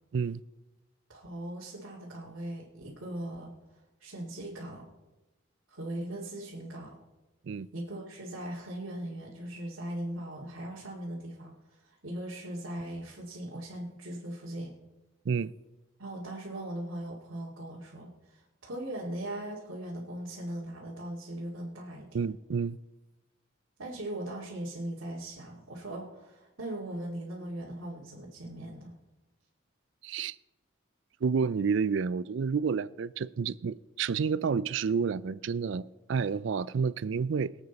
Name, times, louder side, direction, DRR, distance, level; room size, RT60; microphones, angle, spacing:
voice 1, 1.1-3.5 4.0-4.8 5.7-6.9 7.7-14.7 16.0-22.2 23.8-29.0, right 1 dB, 85° right, 2.4 m, -39 dB
voice 2, 22.1-22.8 30.0-30.4 31.2-37.5, right 5 dB, 70° right, 0.4 m, -30 dB
23.5 x 8.1 x 4.1 m
head